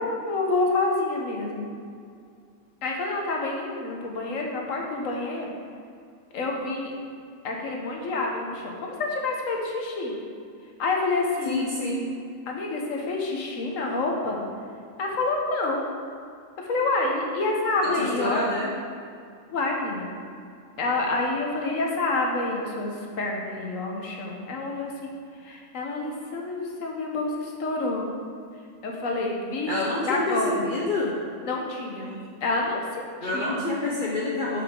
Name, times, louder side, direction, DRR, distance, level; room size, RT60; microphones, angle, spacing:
voice 1, 0.0-1.7 2.8-5.5 6.3-6.9 7.4-10.2 10.8-11.7 12.5-14.4 15.0-15.9 16.6-18.5 19.5-20.1 20.8-25.1 25.4-28.1 28.8-30.6 31.4-32.1 32.4-33.6, left 2 dB, 90° left, 0 dB, 1.4 m, -28 dB
voice 2, 11.4-12.1 18.2-18.7 29.7-31.1 32.0-32.2 33.2-34.6, left 2 dB, 45° left, -5 dB, 0.9 m, -27 dB
7.8 x 5.7 x 3.6 m, 2.3 s
omnidirectional pair, 1.3 m